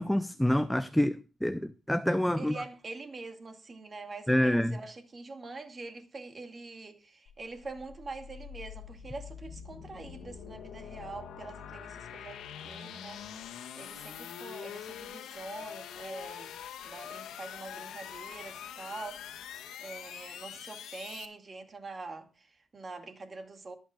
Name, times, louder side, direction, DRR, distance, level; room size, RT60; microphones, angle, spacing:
voice 1, 0.0-2.6 4.3-4.8, left 1 dB, 5° left, 0.5 m, -27 dB
voice 2, 2.3-13.5 13.8-16.5 16.8-19.2 19.8-23.7, right 3 dB, 25° right, 2.2 m, -44 dB
sound 1, 7.3-21.3, left 9 dB, 75° left, 2.0 m, -44 dB
22.5 x 8.9 x 2.4 m
cardioid pair, 135°, 0 cm